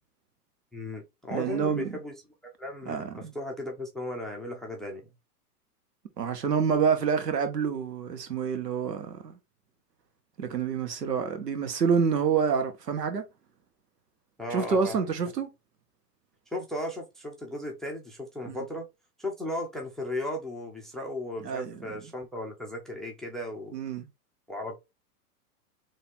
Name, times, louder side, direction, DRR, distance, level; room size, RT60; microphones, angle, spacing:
voice 1, 0.7-2.1 2.6-5.0 14.4-15.0 16.5-18.9 19.2-23.7 24.5-24.8, left 1 dB, ahead, 0.5 m, -36 dB
voice 2, 1.3-2.0 2.9-3.3 6.2-9.4 10.4-13.2 14.5-15.5 18.5-18.6 21.4-21.8 23.7-24.1, right 6 dB, 90° right, 1.5 m, -27 dB
4.1 x 2.9 x 3.6 m
hypercardioid pair, 125°, 47 cm